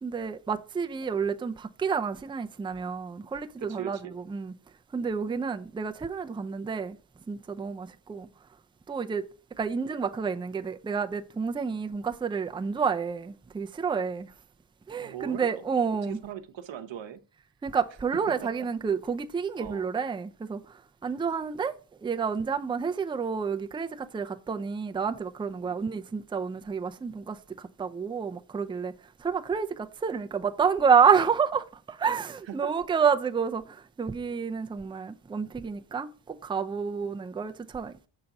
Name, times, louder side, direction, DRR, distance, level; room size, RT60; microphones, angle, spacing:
voice 1, 0.0-4.5 4.9-7.0 7.3-8.3 8.9-9.2 9.6-14.3 14.9-16.2 17.6-20.6 21.0-21.7 22.0-28.9 29.2-37.9, right 6 dB, 10° right, 0.4 m, -29 dB
voice 2, 3.6-4.2 15.0-15.6 16.0-17.2 18.3-18.7 19.6-19.9 25.6-25.8 32.5-32.7 37.0-37.2, right 10 dB, 65° right, 0.9 m, -40 dB
6.7 x 4.0 x 5.8 m
cardioid pair, 110°, 48 cm